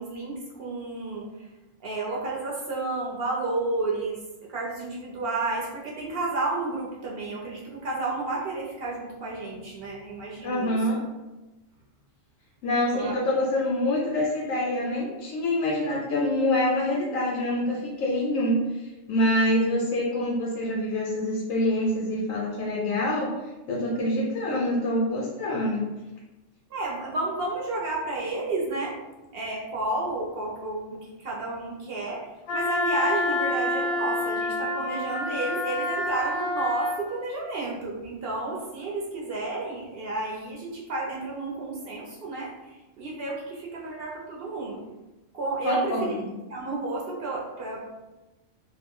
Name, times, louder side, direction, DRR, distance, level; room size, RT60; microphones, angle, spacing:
voice 1, 0.0-1.5 1.8-4.2 4.5-10.8 12.9-13.2 26.7-29.0 29.3-44.8 45.3-46.2 46.5-47.8, right 2 dB, 60° right, -3 dB, 0.7 m, -31 dB
voice 2, 10.4-11.0 12.6-23.3 23.7-25.9 45.6-46.2, left 1 dB, 90° left, -3 dB, 1.0 m, -26 dB
Wind instrument woodwind instrument, 32.5-37.0, left 2 dB, 65° left, 0.7 m, -28 dB
2.4 x 2.1 x 3.6 m, 1.1 s
omnidirectional pair, 1.3 m